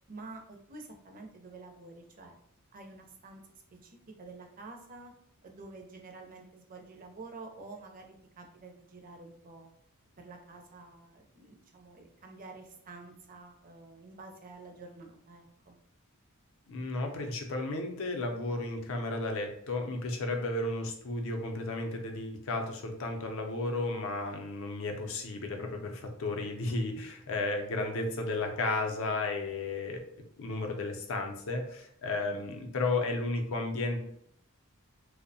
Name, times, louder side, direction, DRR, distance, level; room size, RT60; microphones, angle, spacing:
voice 1, 0.0-2.4 2.7-3.4 3.8-5.1 5.4-9.7 10.2-15.8 32.2-32.6, right 3 dB, 40° right, 3 dB, 0.4 m, -49 dB
voice 2, 16.7-30.0 30.4-34.0, left 2 dB, 60° left, 4 dB, 0.5 m, -33 dB
2.6 x 2.0 x 2.6 m, 0.68 s
head